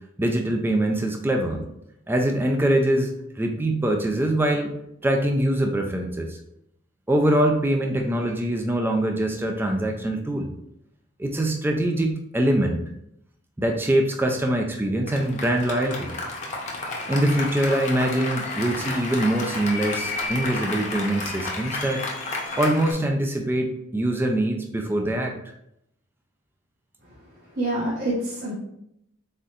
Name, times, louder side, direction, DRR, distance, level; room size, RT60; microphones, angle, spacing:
voice 1, 0.2-1.6 2.1-4.7 5.0-6.4 7.1-10.5 11.2-12.8 13.6-16.1 17.1-22.0 22.6-25.3, right 1 dB, 10° right, 2 dB, 0.3 m, -23 dB
Applause, 15.1-22.9, left 2 dB, 35° left, 0.7 m, -31 dB
voice 2, 27.0-28.5, right 1 dB, 55° right, -8 dB, 1.0 m, -28 dB
4.2 x 3.8 x 2.4 m, 0.78 s
head